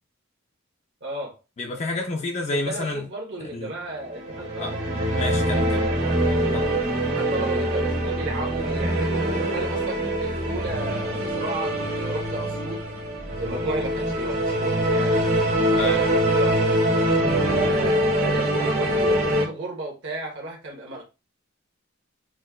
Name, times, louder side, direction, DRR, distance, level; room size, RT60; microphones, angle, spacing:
voice 1, 1.0-1.4 2.5-4.9 7.1-12.8 13.4-15.3 15.8-16.8 17.4-21.0, right 2 dB, 65° right, 1.1 m, -33 dB
voice 2, 1.6-3.1 3.4-3.7 4.6-4.7 5.2-5.9 6.5-6.8 15.7-16.0, left 2 dB, 35° left, 0.4 m, -29 dB
sound 1, 4.0-19.4, right 1 dB, 80° right, 1.6 m, -24 dB
6.2 x 2.2 x 2.2 m
head